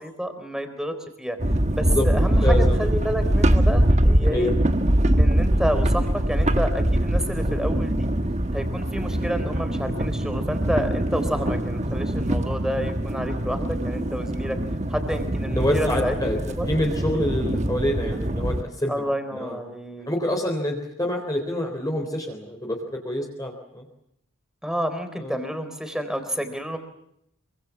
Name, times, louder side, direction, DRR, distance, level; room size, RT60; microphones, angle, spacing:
voice 1, 0.0-1.4 1.7-4.5 5.2-8.1 8.5-14.6 14.9-16.2 16.6-16.7 18.9-20.1 24.6-26.8, equal, 5° right, 8 dB, 3.8 m, -29 dB
sound 1, 1.4-18.6, right 1 dB, 35° right, 1.3 m, -23 dB
voice 2, 1.9-2.8 4.3-4.5 15.5-16.4 16.7-19.0 19.3-19.6 20.0-23.9 25.2-25.3, left 1 dB, 15° left, 1 dB, 3.7 m, -26 dB
27.0 x 25.0 x 7.2 m, 0.76 s
head